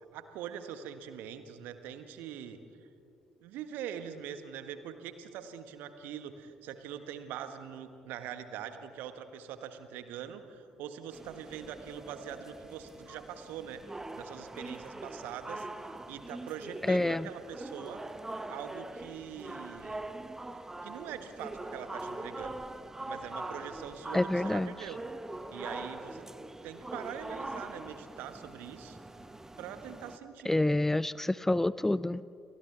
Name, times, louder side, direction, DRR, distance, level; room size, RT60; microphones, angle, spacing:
voice 1, 0.1-2.9 3.4-15.7 16.1-18.0 18.5-20.0 20.8-22.6 23.1-25.0 25.5-26.3 26.6-29.0 29.6-30.5, right 9 dB, 60° right, 9 dB, 1.5 m, -43 dB
sound 1, 11.1-30.2, right 2 dB, 15° right, 1.3 m, -43 dB
voice 2, 16.9-17.3 24.1-24.7 30.5-32.2, left 1 dB, 10° left, 18 dB, 0.4 m, -27 dB
30.0 x 29.0 x 3.5 m, 2.6 s
figure-of-eight pair, 45°, 4 cm